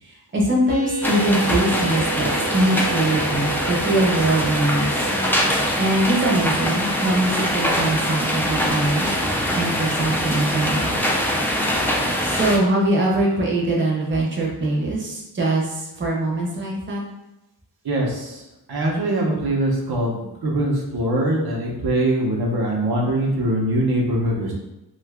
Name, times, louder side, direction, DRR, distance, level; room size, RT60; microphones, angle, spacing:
voice 1, 0.0-5.0 5.8-9.1 9.5-11.0 12.2-17.0, right 1 dB, 30° right, -3 dB, 0.7 m, -22 dB
sound 1, 0.7-8.7, right 5 dB, 85° left, 0.6 m, -34 dB
sound 2, 1.0-12.6, equal, 5° left, 0.3 m, -23 dB
voice 2, 17.8-18.4 18.7-24.5, right 1 dB, 70° right, -2 dB, 0.7 m, -22 dB
2.7 x 2.4 x 3.3 m, 0.96 s
wide cardioid pair, 130°, 39 cm